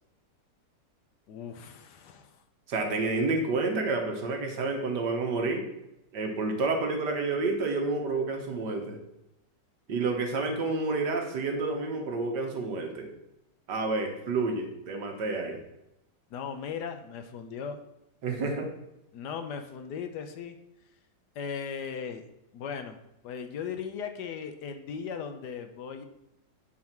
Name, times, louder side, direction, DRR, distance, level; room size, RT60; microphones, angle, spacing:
voice 1, 1.3-2.4 16.3-17.8 19.1-20.6 21.3-22.2 22.5-23.0 23.2-26.0, left 6 dB, 70° left, 7 dB, 1.3 m, -37 dB
voice 2, 2.7-5.7 6.1-9.0 9.9-13.1 13.7-15.6 18.2-18.7, right 3 dB, 75° right, 3 dB, 1.8 m, -29 dB
8.6 x 4.1 x 5.9 m, 0.88 s
omnidirectional pair, 1.9 m